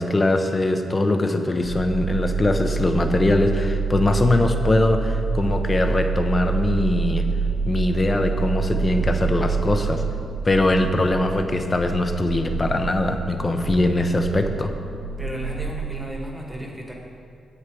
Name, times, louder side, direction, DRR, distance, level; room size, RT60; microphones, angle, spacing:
voice 1, 0.0-7.2 7.7-10.0 10.4-14.7, left 2 dB, 25° left, 6 dB, 0.7 m, -21 dB
sound 1, 1.6-16.1, right 5 dB, 70° right, 1.1 m, -27 dB
voice 2, 15.2-16.9, equal, 5° right, -1 dB, 1.6 m, -34 dB
10.0 x 8.4 x 4.7 m, 2.4 s
cardioid pair, 125°, 0 cm